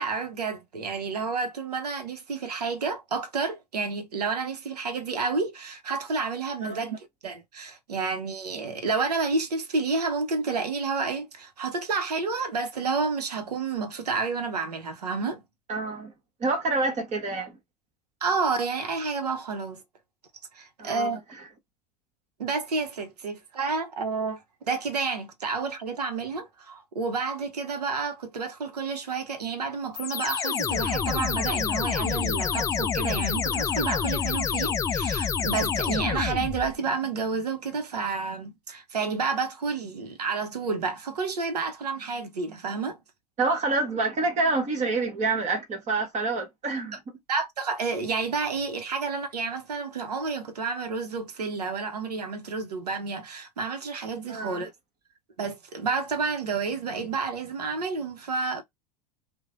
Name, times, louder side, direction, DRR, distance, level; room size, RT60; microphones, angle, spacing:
voice 1, 0.0-15.4 18.2-19.8 20.5-21.2 22.4-43.0 46.9-47.0 47.3-54.7 55.4-58.6, right 4 dB, 80° right, 0.7 m, -30 dB
voice 2, 15.7-16.1 16.4-17.6 20.8-21.1 43.4-47.0 54.3-54.6, right 3 dB, 35° right, 1.3 m, -27 dB
sound 1, 29.9-36.8, left 7 dB, 15° left, 0.3 m, -27 dB
3.0 x 2.1 x 2.4 m
figure-of-eight pair, 80°, 20 cm